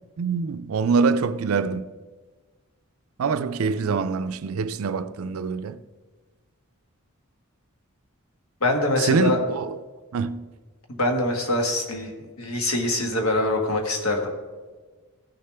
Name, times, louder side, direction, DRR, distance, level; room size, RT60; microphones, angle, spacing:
voice 1, 0.2-1.9 3.2-5.8 9.1-9.8 10.1-10.5, right 5 dB, 70° right, 0.4 m, -24 dB
voice 2, 8.6-9.4 10.9-12.1 12.4-14.3, left 2 dB, 75° left, 1.5 m, -24 dB
15.5 x 6.6 x 3.4 m
head